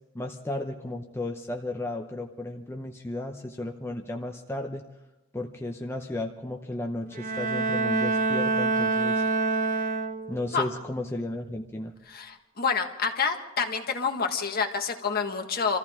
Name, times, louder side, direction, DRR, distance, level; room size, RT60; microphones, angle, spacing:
voice 1, 0.1-4.8 5.3-9.2 10.3-11.9, left 1 dB, 10° left, 2 dB, 0.7 m, -34 dB
Bowed string instrument, 7.1-10.5, right 3 dB, 40° right, 0.8 m, -26 dB
voice 2, 12.1-15.8, left 5 dB, 50° left, 4 dB, 1.6 m, -28 dB
26.5 x 14.5 x 3.6 m, 1.0 s
head